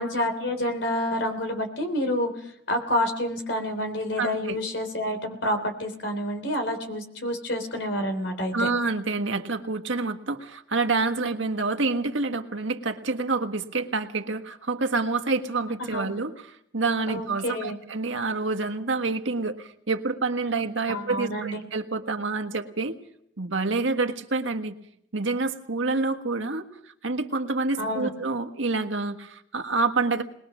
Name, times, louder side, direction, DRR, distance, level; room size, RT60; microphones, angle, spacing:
voice 1, 0.0-8.7 15.8-16.1 17.1-17.8 20.9-21.6 27.8-28.1, left 1 dB, 60° left, 6 dB, 3.6 m, -28 dB
voice 2, 4.2-4.6 8.5-16.3 16.7-23.0 23.4-24.7 25.1-26.6 27.0-30.2, right 3 dB, 70° right, 6 dB, 1.5 m, -27 dB
21.0 x 20.5 x 6.3 m, 0.71 s
head